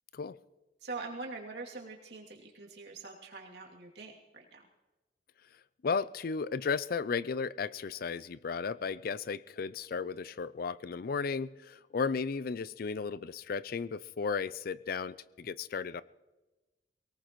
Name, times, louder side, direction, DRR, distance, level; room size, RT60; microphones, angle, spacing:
voice 1, 0.8-4.7, right 3 dB, 70° right, -1 dB, 2.7 m, -44 dB
voice 2, 5.8-16.0, left 5 dB, 55° left, 18 dB, 0.4 m, -34 dB
23.0 x 18.5 x 3.1 m, 1.1 s
head